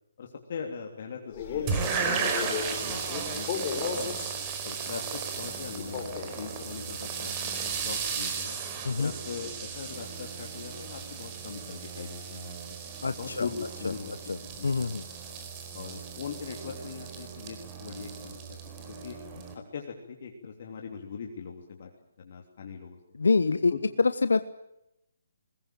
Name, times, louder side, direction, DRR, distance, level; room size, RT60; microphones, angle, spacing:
voice 1, 0.2-4.2 4.6-8.6 9.0-12.6 13.2-14.1 14.6-15.0 15.7-18.6 18.9-19.2 19.7-21.9 22.2-23.0 23.7-23.8, left 6 dB, 50° left, 2 dB, 3.2 m, -41 dB
Male speech man speaking, 1.3-4.4 5.8-6.4, left 6 dB, 30° left, 6.3 m, -35 dB
sound 1, 1.7-19.5, right 6 dB, 25° right, 4.7 m, -35 dB
voice 2, 13.0-13.5 14.3-15.0 23.2-23.7 24.0-24.4, left 4 dB, 75° left, 12 dB, 1.0 m, -25 dB
21.0 x 20.5 x 9.1 m, 0.83 s
figure-of-eight pair, 145°, 0 cm